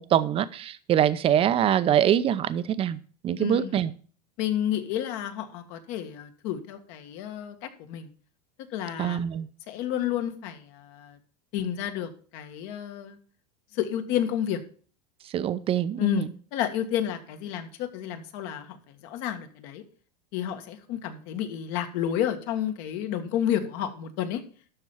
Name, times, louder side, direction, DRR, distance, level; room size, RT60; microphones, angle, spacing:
voice 1, 0.0-3.0 3.2-3.9 9.0-9.5 15.3-16.3, right 10 dB, 25° right, 14 dB, 0.7 m, -24 dB
voice 2, 3.4-3.8 4.4-8.1 8.7-9.2 9.7-11.2 11.5-13.2 13.7-14.6 16.0-19.8 20.3-24.4, left 10 dB, 55° left, 7 dB, 1.7 m, -30 dB
12.5 x 4.4 x 7.1 m, 0.43 s
supercardioid pair, 135°, 21 cm